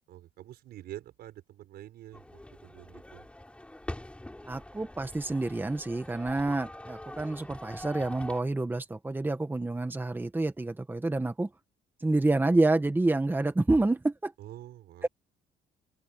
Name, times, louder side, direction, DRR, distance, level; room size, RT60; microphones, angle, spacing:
voice 1, 0.1-3.2 14.4-15.1, right 13 dB, 70° right, 5.0 m, -47 dB
sound 1, 2.1-8.4, left 1 dB, 5° left, 6.2 m, -44 dB
voice 2, 4.5-11.5 12.0-14.3 15.0-15.1, right 2 dB, 10° right, 1.7 m, -28 dB
open air
cardioid pair, 110°, 17 cm